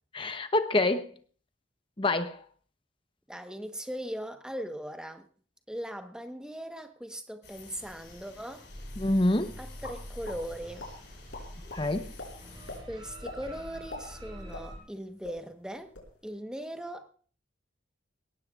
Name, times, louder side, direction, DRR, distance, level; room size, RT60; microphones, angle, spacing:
voice 1, 0.1-1.1 2.0-2.4 9.0-9.6 11.7-12.1, left 2 dB, 25° left, 0.9 m, -26 dB
voice 2, 3.3-5.3 5.7-8.7 9.6-10.9 12.9-15.9 16.2-17.1, equal, 5° right, 1.2 m, -39 dB
sound 1, 7.4-12.8, left 4 dB, 60° left, 5.6 m, -52 dB
sound 2, 8.7-14.8, equal, 25° right, 7.9 m, -45 dB
sound 3, 9.8-10.4 10.8-10.9 11.3-11.8 12.2-12.3 12.7-12.8 13.2-13.4 13.7-15.0 15.2-15.4 15.8-16.1, left 2 dB, 80° left, 4.8 m, -41 dB
21.0 x 18.0 x 2.5 m
head